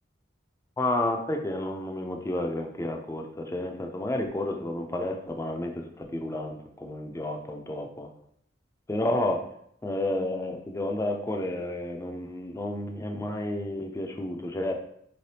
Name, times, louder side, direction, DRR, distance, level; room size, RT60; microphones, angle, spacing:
voice 1, 0.8-8.1 8.9-9.4 9.8-14.8, left 1 dB, 15° left, 3 dB, 0.4 m, -31 dB
4.5 x 3.3 x 2.8 m, 0.70 s
head